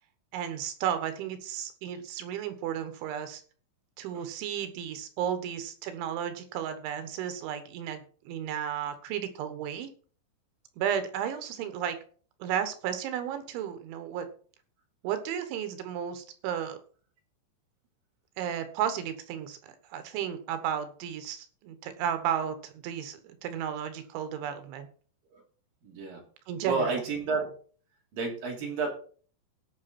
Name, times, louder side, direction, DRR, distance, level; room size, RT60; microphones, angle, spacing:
voice 1, 0.3-3.4 4.0-9.9 10.8-12.0 12.4-14.3 15.0-16.8 18.4-24.9 26.5-27.0, right 9 dB, 90° right, 9 dB, 3.7 m, -33 dB
voice 2, 25.8-26.2 26.6-27.5 28.1-28.9, right 4 dB, 55° right, 0 dB, 4.4 m, -31 dB
17.0 x 6.0 x 4.2 m, 0.43 s
omnidirectional pair, 5.2 m